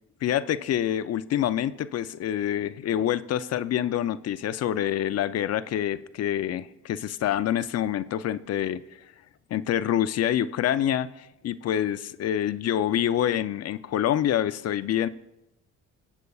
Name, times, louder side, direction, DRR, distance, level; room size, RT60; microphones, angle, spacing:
voice 1, 0.2-8.8 9.5-15.1, left 11 dB, 55° left, 0.5 m, -26 dB
23.5 x 8.0 x 2.4 m
cardioid pair, 90°, 30 cm